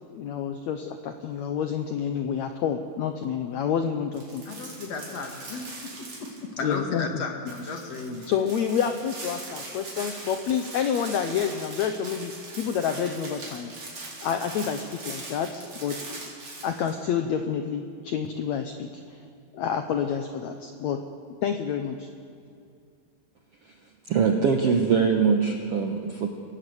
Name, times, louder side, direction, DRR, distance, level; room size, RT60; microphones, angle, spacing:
voice 1, 0.1-4.6 6.6-7.1 8.3-13.7 14.2-16.2 16.6-19.2 19.5-21.0 21.4-22.1, left 8 dB, 85° left, 7 dB, 1.5 m, -28 dB
sound 1, 4.1-6.7 7.0-7.1 7.5-17.0, right 2 dB, 40° right, 5.2 m, -41 dB
voice 2, 4.5-5.9 6.2-8.3, left 4 dB, 50° left, 3 dB, 2.6 m, -34 dB
voice 3, 24.1-26.3, right 6 dB, 65° right, 3 dB, 1.5 m, -22 dB
28.0 x 16.5 x 8.0 m, 2.4 s
omnidirectional pair, 4.4 m